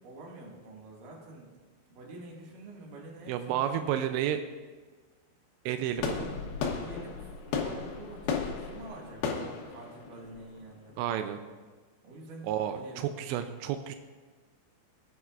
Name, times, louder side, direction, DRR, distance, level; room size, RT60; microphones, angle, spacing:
voice 1, 0.0-1.5 1.9-4.1 6.6-11.5 12.0-13.1, right 2 dB, 55° right, -3 dB, 3.1 m, -47 dB
voice 2, 3.3-4.4 5.7-6.4 11.0-11.4 12.4-14.0, right 10 dB, 90° right, 8 dB, 2.5 m, -31 dB
sound 1, 6.0-10.9, left 5 dB, 75° left, 2.4 m, -35 dB
18.5 x 9.2 x 2.4 m, 1.4 s
omnidirectional pair, 5.6 m